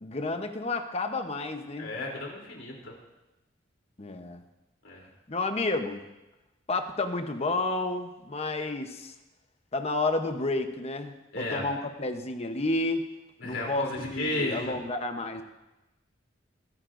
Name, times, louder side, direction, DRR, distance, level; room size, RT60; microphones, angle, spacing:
voice 1, 0.0-1.9 4.0-4.4 5.3-6.0 6.7-9.1 9.7-13.1 13.4-15.4, left 2 dB, 35° left, 7 dB, 0.9 m, -31 dB
voice 2, 1.8-2.9 4.8-5.1 11.3-11.6 13.4-14.7, left 2 dB, 85° left, -2 dB, 3.2 m, -33 dB
23.5 x 9.7 x 2.6 m, 1.0 s
head